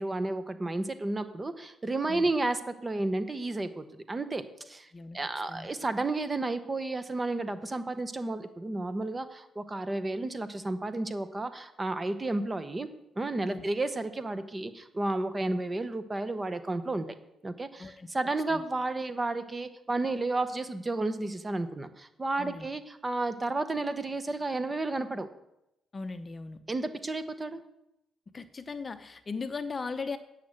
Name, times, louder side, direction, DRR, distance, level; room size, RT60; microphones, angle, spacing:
voice 1, 0.0-4.9 5.1-12.9 13.2-17.1 17.4-25.3 26.7-27.6, right 2 dB, 20° right, 10 dB, 1.0 m, -32 dB
voice 2, 25.9-26.6 28.3-30.2, left 4 dB, 30° left, 10 dB, 0.7 m, -38 dB
9.2 x 6.5 x 7.8 m, 0.87 s
cardioid pair, 90°, 0 cm